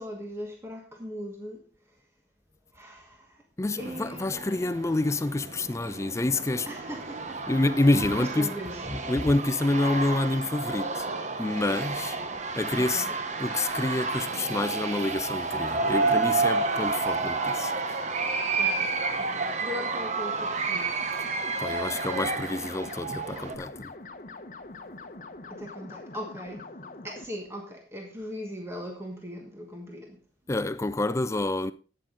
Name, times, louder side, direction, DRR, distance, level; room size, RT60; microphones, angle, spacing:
voice 1, 0.0-1.6 2.7-3.4 3.8-4.7 6.7-7.4 8.2-8.8 12.8-13.2 18.6-20.9 25.5-26.7 27.0-30.2, equal, 15° right, 1.4 m, -39 dB
voice 2, 3.6-6.7 7.5-8.5 8.9-11.1 11.4-12.2 12.6-13.1 13.4-18.0 21.6-23.9 30.5-31.7, left 2 dB, 15° left, 0.4 m, -27 dB
sound 1, 3.8-23.6, right 3 dB, 40° right, 1.0 m, -30 dB
sound 2, 21.0-27.3, left 3 dB, 45° left, 1.0 m, -43 dB
12.0 x 8.9 x 3.8 m
head